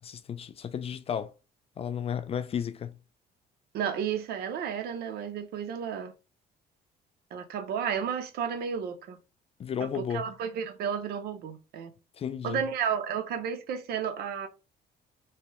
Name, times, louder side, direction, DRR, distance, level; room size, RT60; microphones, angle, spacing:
voice 1, 0.0-1.3 1.8-3.0 9.6-10.3 12.1-12.6, left 8 dB, 35° left, 0.4 m, -33 dB
voice 2, 3.7-6.1 7.3-9.2 9.8-11.9 12.4-14.5, right 7 dB, 70° right, 0.7 m, -32 dB
3.1 x 2.7 x 3.0 m
cardioid pair, 110°, 17 cm